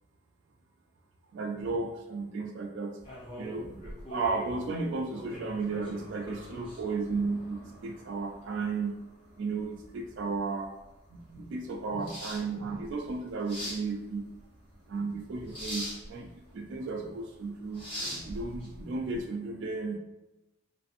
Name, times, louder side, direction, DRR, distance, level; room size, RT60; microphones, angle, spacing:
voice 1, 1.3-2.9 3.4-3.8 4.1-9.0 9.4-10.7 11.1-14.3 14.9-20.0, right 3 dB, 60° right, 2 dB, 0.3 m, -34 dB
sound 1, 3.0-19.2, equal, 25° left, 0.8 m, -43 dB
2.6 x 2.4 x 2.5 m, 0.95 s
head